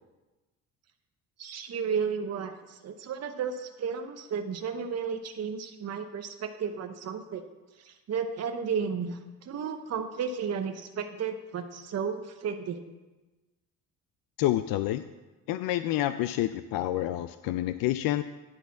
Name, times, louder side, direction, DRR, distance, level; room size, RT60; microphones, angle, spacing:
voice 1, 1.4-7.4 7.8-12.8, right 6 dB, 40° right, 6 dB, 0.8 m, -33 dB
voice 2, 14.4-15.0 15.5-18.2, left 14 dB, 65° left, 12 dB, 0.5 m, -28 dB
10.5 x 4.1 x 6.9 m, 1.1 s
hypercardioid pair, 55°, 37 cm